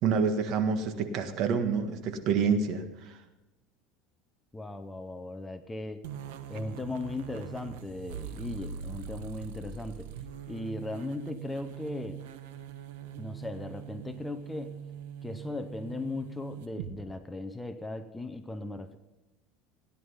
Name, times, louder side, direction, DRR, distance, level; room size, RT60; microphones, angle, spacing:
voice 1, 0.0-3.2, right 5 dB, 50° right, 7 dB, 1.6 m, -28 dB
voice 2, 4.5-6.0 6.5-10.1 10.5-12.2 13.2-14.7 15.2-19.0, left 2 dB, 10° left, 9 dB, 0.7 m, -38 dB
sound 1, 6.0-16.9, right 8 dB, 85° right, 1.1 m, -42 dB
16.5 x 10.5 x 5.5 m, 1.0 s
supercardioid pair, 145°, 0 cm